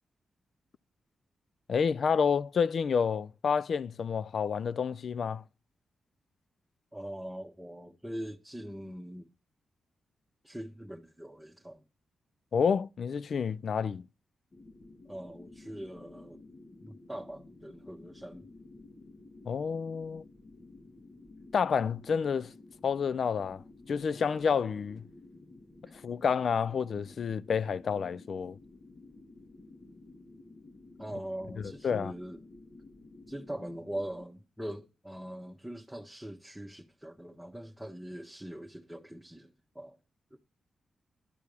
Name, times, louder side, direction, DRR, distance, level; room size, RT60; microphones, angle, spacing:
voice 1, 1.7-5.4 12.5-14.0 19.5-20.2 21.5-22.5 22.8-23.6 23.9-25.0 26.0-28.6 31.8-32.1, left 6 dB, 65° left, 0.4 m, -29 dB
voice 2, 6.9-9.3 10.4-11.8 15.1-16.4 16.8-18.5 31.0-32.4 33.3-40.0 40.3-40.4, right 1 dB, 5° right, 1.2 m, -42 dB
sound 1, 14.5-34.3, left 2 dB, 50° left, 1.6 m, -53 dB
11.5 x 4.6 x 6.9 m
supercardioid pair, 50°, 0 cm